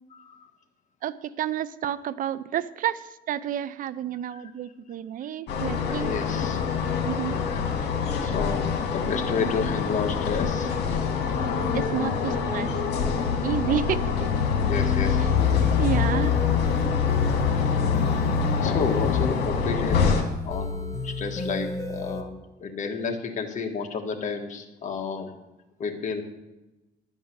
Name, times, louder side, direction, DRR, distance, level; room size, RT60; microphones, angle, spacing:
voice 1, 1.0-6.1 7.0-7.4 11.7-12.7 13.4-14.5 15.2-15.4 15.8-16.4, right 10 dB, 55° right, 16 dB, 0.5 m, -30 dB
sound 1, 5.5-20.2, left 6 dB, 75° left, 2.0 m, -25 dB
voice 2, 5.9-6.6 7.5-10.7 14.4-15.2 16.6-16.9 17.5-17.6 18.6-20.1 20.4-25.3 25.8-26.2, left 5 dB, 45° left, 3 dB, 1.6 m, -31 dB
sound 2, 15.3-22.2, left 3 dB, 15° left, 1.7 m, -34 dB
11.5 x 5.4 x 8.0 m, 1.0 s
cardioid pair, 110°, 17 cm